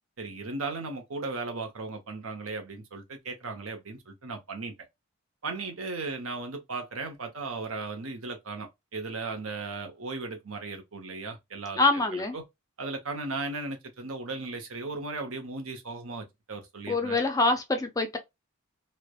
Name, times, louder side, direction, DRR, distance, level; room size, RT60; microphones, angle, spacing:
voice 1, 0.2-4.7 5.4-11.8 12.1-12.4 12.8-17.2, right 3 dB, 65° right, 0.8 m, -36 dB
voice 2, 11.8-12.4 16.9-18.2, left 2 dB, 15° left, 0.4 m, -25 dB
3.2 x 2.1 x 2.2 m
head